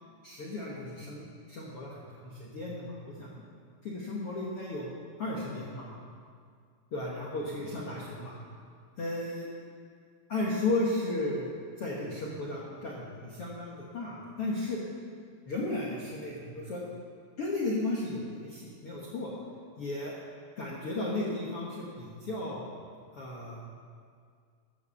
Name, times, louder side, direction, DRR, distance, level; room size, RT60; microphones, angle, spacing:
voice 1, 0.2-3.4 3.8-4.9 5.2-5.9 6.9-8.3 9.0-9.5 10.3-11.5 11.8-14.8 15.5-16.8 17.4-19.3 19.8-20.1 20.6-22.6 23.1-23.6, left 2 dB, 80° left, -4 dB, 1.2 m, -34 dB
13.5 x 8.2 x 7.0 m, 2.1 s
omnidirectional pair, 4.9 m